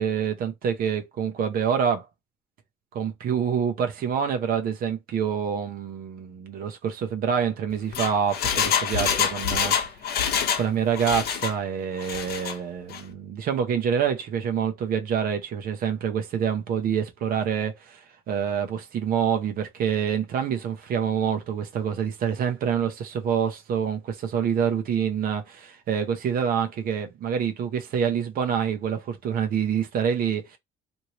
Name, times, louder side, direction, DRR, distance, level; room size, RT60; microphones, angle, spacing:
voice 1, 0.0-2.1 2.9-9.7 10.6-30.6, right 7 dB, 60° right, 0.7 m, -26 dB
Engine, 7.7-10.7 10.9-11.6 12.0-12.5 12.9-13.0, left 7 dB, 70° left, 0.7 m, -26 dB
3.1 x 2.6 x 2.9 m
cardioid pair, 110°, 17 cm